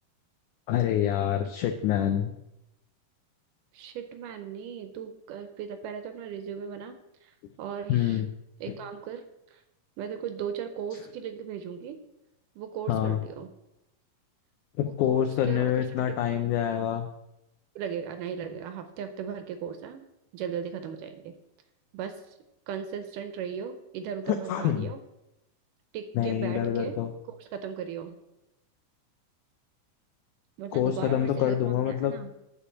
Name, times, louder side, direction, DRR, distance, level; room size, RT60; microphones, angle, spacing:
voice 1, 0.7-2.4 7.9-8.3 8.7-8.8 12.9-13.2 14.8-17.1 24.3-24.9 26.2-27.1 30.7-32.1, left 10 dB, 80° left, 6 dB, 1.8 m, -26 dB
voice 2, 3.7-6.9 7.2-8.2 8.6-9.2 9.5-9.6 10.0-12.0 12.6-13.5 14.8-16.2 17.8-20.0 20.3-21.4 21.9-22.4 22.7-25.0 25.9-27.0 27.3-28.2 30.6-32.3, right 7 dB, 75° right, 8 dB, 2.1 m, -37 dB
8.3 x 5.0 x 7.0 m, 0.88 s
omnidirectional pair, 4.1 m